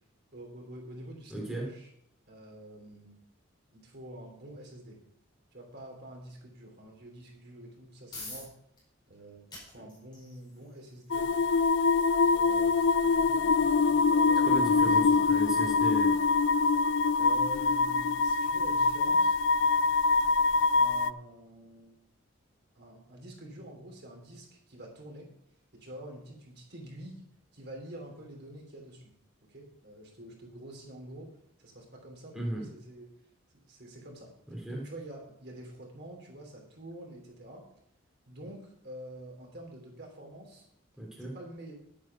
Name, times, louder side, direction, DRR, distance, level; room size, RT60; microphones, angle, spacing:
voice 1, 0.3-1.9 2.3-3.2 3.7-5.0 5.5-8.5 9.1-11.3 12.3-15.2 17.2-19.3 20.8-22.0 22.7-25.3 25.7-27.2 27.5-29.1 29.5-31.3 31.6-33.1 33.7-34.3 34.7-37.6 38.3-40.6 41.2-41.7, right 1 dB, 55° right, 0 dB, 3.2 m, -47 dB
voice 2, 1.3-1.7 14.4-16.2 32.3-32.7 34.5-34.8 41.0-41.4, right 1 dB, 5° right, -3 dB, 2.8 m, -36 dB
sound 1, 8.1-22.5, left 2 dB, 20° left, 5.3 m, -54 dB
sound 2, 11.1-21.1, left 4 dB, 60° left, 0.4 m, -24 dB
10.5 x 8.9 x 5.9 m, 0.71 s
head